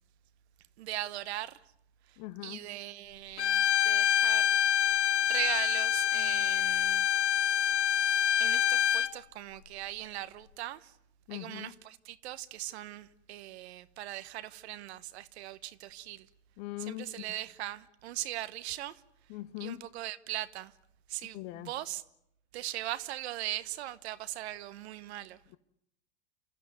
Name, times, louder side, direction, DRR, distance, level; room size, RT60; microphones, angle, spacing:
voice 1, 0.8-1.6 2.1-7.1 7.6-7.8 8.4-10.9 11.3-16.3 16.8-19.0 19.6-20.7 21.1-22.0 22.5-25.4, right 14 dB, 70° right, 1.1 m, -40 dB
voice 2, 2.2-2.7 11.3-11.8 16.6-17.3 19.3-19.9 21.3-21.7, left 17 dB, 50° left, 1.1 m, -41 dB
Bowed string instrument, 3.4-9.1, left 10 dB, 80° left, 0.8 m, -26 dB
28.5 x 13.5 x 9.4 m
hypercardioid pair, 100°, 34 cm